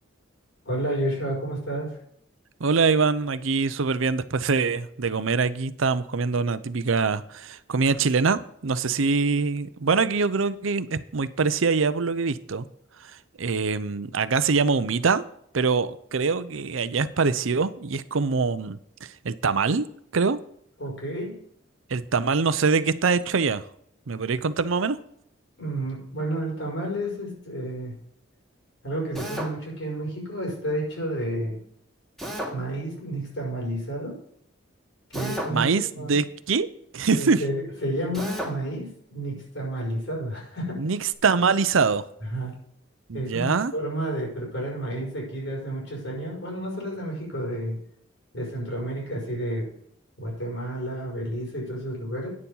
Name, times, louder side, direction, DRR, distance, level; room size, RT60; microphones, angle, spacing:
voice 1, 0.7-2.0 20.8-21.4 25.6-28.0 28.8-31.6 32.5-34.2 35.1-35.7 36.0-36.2 37.1-40.8 42.3-42.5 43.1-47.8 48.3-49.7 50.2-52.3, right 1 dB, 70° left, -2 dB, 5.3 m, -31 dB
voice 2, 2.6-12.7 13.0-15.2 15.5-20.4 21.9-23.6 24.1-25.0 35.5-36.7 36.9-37.4 40.8-42.1 43.1-43.7, right 4 dB, 85° right, 14 dB, 0.6 m, -24 dB
Drill, 29.1-29.5 32.2-32.5 35.1-35.6 38.1-38.5, equal, ahead, 1.9 m, -32 dB
9.7 x 6.9 x 5.6 m, 0.69 s
head